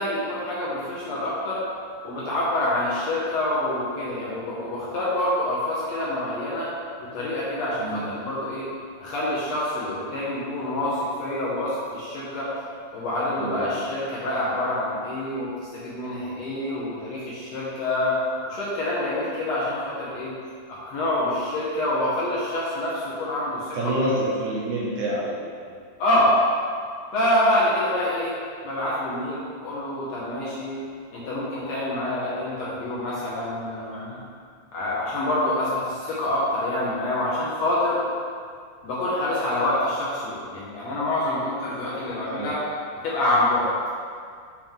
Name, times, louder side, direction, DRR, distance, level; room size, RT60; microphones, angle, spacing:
voice 1, 0.0-1.6 2.0-6.7 7.0-8.6 9.0-12.5 12.9-18.2 18.5-20.3 20.7-24.3 26.0-26.3 27.1-28.3 28.6-30.8 31.1-34.2 34.7-38.0 38.8-42.6 43.0-43.7, left 1 dB, 65° left, -8 dB, 1.9 m, -26 dB
voice 2, 7.8-8.1 13.4-13.7 23.5-25.9 42.4-42.5, right 1 dB, 75° right, -4 dB, 2.0 m, -28 dB
7.3 x 4.4 x 3.6 m, 2.1 s
omnidirectional pair, 3.9 m